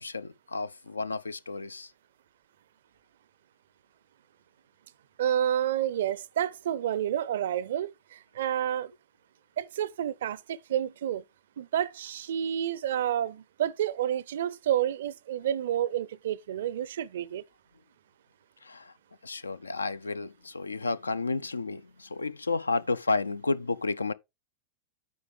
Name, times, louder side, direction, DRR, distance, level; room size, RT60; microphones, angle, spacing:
voice 1, 0.0-1.9 18.7-18.8 19.2-24.1, left 3 dB, 80° left, 0.4 m, -31 dB
voice 2, 5.2-8.9 9.6-11.2 11.6-17.4, right 10 dB, 60° right, 0.4 m, -29 dB
8.4 x 4.8 x 3.8 m
figure-of-eight pair, 90°, 0 cm